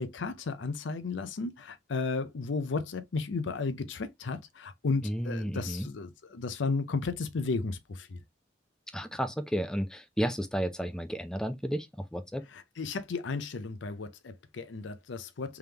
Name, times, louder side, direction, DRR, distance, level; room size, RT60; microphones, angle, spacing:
voice 1, 0.0-8.2 12.5-15.6, left 4 dB, 85° left, 0.6 m, -34 dB
voice 2, 5.0-5.9 8.9-12.5, equal, 5° left, 0.4 m, -32 dB
3.5 x 3.4 x 2.8 m
head